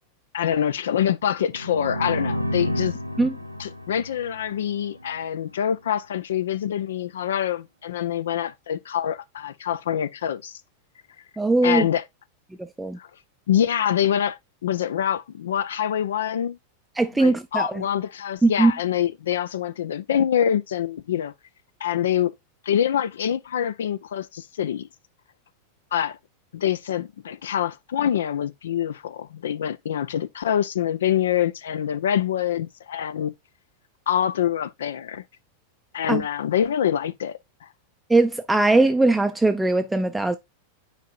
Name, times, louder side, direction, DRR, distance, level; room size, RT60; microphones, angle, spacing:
voice 1, 0.3-3.3 3.6-10.5 11.6-12.0 13.0-13.1 13.5-16.6 17.2-21.3 21.8-22.3 22.6-24.9 25.9-26.2 26.5-33.3 34.1-35.2 35.9-37.7, left 10 dB, 60° left, 0.4 m, -25 dB
sound 1, 1.5-5.2, equal, 90° right, 0.6 m, -30 dB
voice 2, 11.4-11.8 12.8-13.0 17.0-17.8 18.4-18.7 36.1-36.2 38.1-40.4, right 2 dB, 5° right, 0.5 m, -20 dB
9.1 x 4.7 x 2.4 m
figure-of-eight pair, 90°, 0 cm